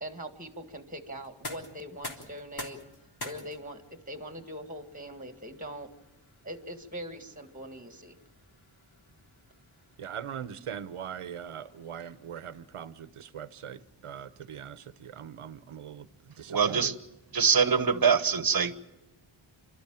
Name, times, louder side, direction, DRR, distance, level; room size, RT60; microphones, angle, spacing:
voice 1, 0.0-2.8 3.2-5.9 6.4-8.2, equal, 15° right, 1.9 m, -42 dB
sound 1, 1.2-13.0, left 1 dB, 50° left, 3.5 m, -48 dB
voice 2, 10.0-16.1 16.4-17.0, right 8 dB, 90° right, 1.0 m, -41 dB
voice 3, 16.5-16.9 17.3-18.7, right 6 dB, 45° right, 1.1 m, -24 dB
29.5 x 13.0 x 8.9 m
wide cardioid pair, 110°, 49 cm